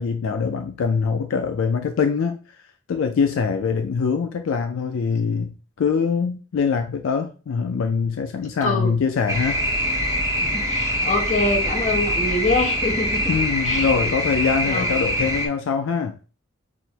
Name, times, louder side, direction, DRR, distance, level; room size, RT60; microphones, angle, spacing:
voice 1, 0.0-2.4 2.9-9.6 13.3-16.2, left 5 dB, 75° left, 0.4 m, -23 dB
voice 2, 8.6-8.9 10.4-13.3 13.6-14.2 14.6-15.0, left 2 dB, 35° left, 0.9 m, -25 dB
sound 1, 9.3-15.5, equal, 15° right, 0.7 m, -24 dB
6.2 x 2.1 x 2.8 m
head